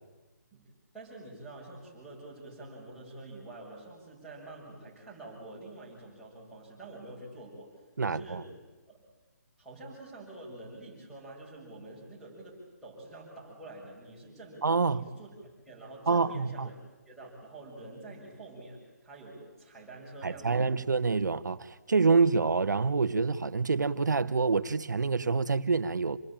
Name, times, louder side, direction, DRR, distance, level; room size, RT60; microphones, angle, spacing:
voice 1, 0.9-7.7 8.0-8.5 8.9-9.0 9.6-15.3 15.6-16.7 17.1-20.8, right 2 dB, ahead, -5 dB, 6.6 m, -47 dB
voice 2, 8.0-8.4 14.6-15.0 16.1-16.7 20.2-26.2, right 4 dB, 85° right, 13 dB, 1.2 m, -27 dB
28.0 x 19.0 x 8.9 m, 1.2 s
hypercardioid pair, 170°, 10 cm